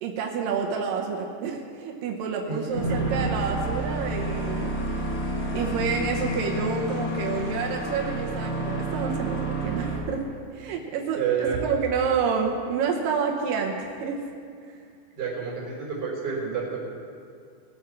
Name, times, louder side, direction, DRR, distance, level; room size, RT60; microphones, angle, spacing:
voice 1, 0.0-4.7 5.5-10.2 10.5-14.2 14.7-14.8, right 6 dB, 90° right, 1 dB, 1.9 m, -28 dB
voice 2, 2.5-3.3 11.1-11.6 15.1-16.8, right 6 dB, 25° right, -4 dB, 4.1 m, -29 dB
sound 1, 2.7-10.0, right 2 dB, 45° left, 1.8 m, -30 dB
sound 2, 3.2-9.9, left 9 dB, 80° left, 3.1 m, -38 dB
20.0 x 7.7 x 6.0 m, 2.3 s
omnidirectional pair, 5.3 m